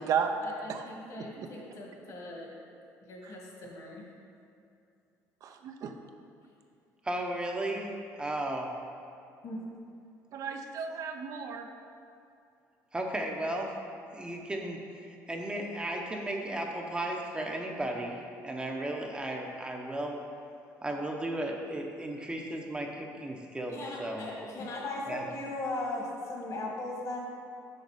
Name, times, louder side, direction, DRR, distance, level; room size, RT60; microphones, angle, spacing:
voice 1, 0.4-2.5 3.1-4.0 9.4-9.6 23.7-27.2, left 2 dB, 55° left, -2 dB, 1.8 m, -38 dB
voice 2, 1.2-1.5 5.4-5.9 10.3-11.7, right 7 dB, 60° right, 5 dB, 0.6 m, -33 dB
voice 3, 7.0-7.9 8.2-8.7 12.9-13.7 14.1-18.2 18.4-20.2 20.8-24.3 25.1-25.2, right 1 dB, 15° right, 1 dB, 0.8 m, -35 dB
6.6 x 6.4 x 4.9 m, 2.5 s
cardioid pair, 115°, 7 cm